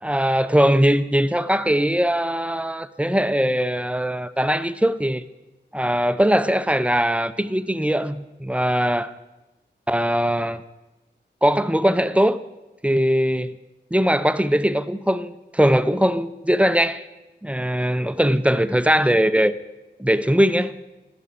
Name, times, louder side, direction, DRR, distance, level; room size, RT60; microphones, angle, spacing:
voice 1, 0.0-5.2 5.7-9.1 9.9-10.6 11.4-12.4 12.8-13.6 13.9-17.0 17.4-19.5 20.0-20.8, equal, 5° right, 0.5 m, -20 dB
13.5 x 11.0 x 4.0 m
wide cardioid pair, 50°, 19 cm